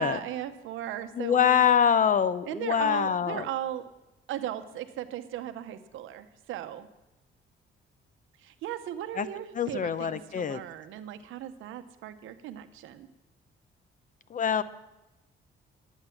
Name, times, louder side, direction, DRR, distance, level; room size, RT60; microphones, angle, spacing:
voice 1, 0.0-1.7 2.4-3.9 4.3-6.9 8.4-13.1, right 11 dB, 85° right, 10 dB, 0.8 m, -37 dB
voice 2, 1.2-3.4 9.2-9.3 9.5-10.6 14.3-14.6, left 8 dB, 40° left, 15 dB, 0.6 m, -24 dB
11.0 x 8.1 x 5.8 m, 0.99 s
cardioid pair, 90°, 20 cm